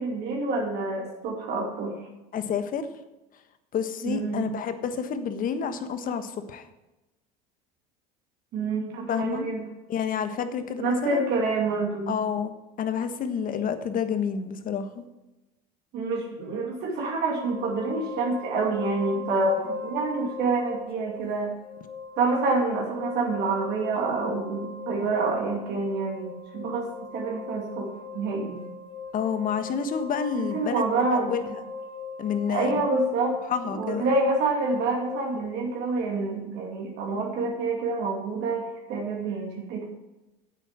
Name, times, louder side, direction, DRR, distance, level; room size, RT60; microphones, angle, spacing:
voice 1, 0.0-1.9 4.0-4.5 8.5-9.6 10.8-12.2 15.9-21.5 22.2-28.6 30.5-31.3 32.5-33.4 33.7-39.9, right 3 dB, 60° right, 0 dB, 2.5 m, -27 dB
voice 2, 2.3-2.9 3.7-6.7 9.1-9.5 9.9-11.2 12.1-12.5 12.8-15.0 29.1-31.4 32.2-32.8 33.5-34.1, left 7 dB, 45° left, 10 dB, 1.4 m, -29 dB
sound 1, 17.4-35.4, left 4 dB, 25° left, 2.2 m, -39 dB
9.3 x 8.2 x 7.4 m, 1.0 s
hypercardioid pair, 80°, 19 cm